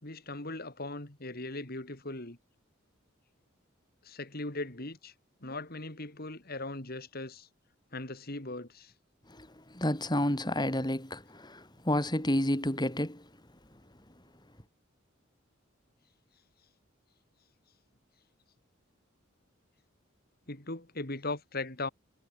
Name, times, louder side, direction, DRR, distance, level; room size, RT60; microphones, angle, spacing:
voice 1, 0.0-2.4 4.0-5.1 5.4-7.5 7.9-8.9 20.5-21.9, left 2 dB, 50° left, 3.4 m, -39 dB
voice 2, 9.7-13.2, left 1 dB, 20° left, 5.9 m, -30 dB
head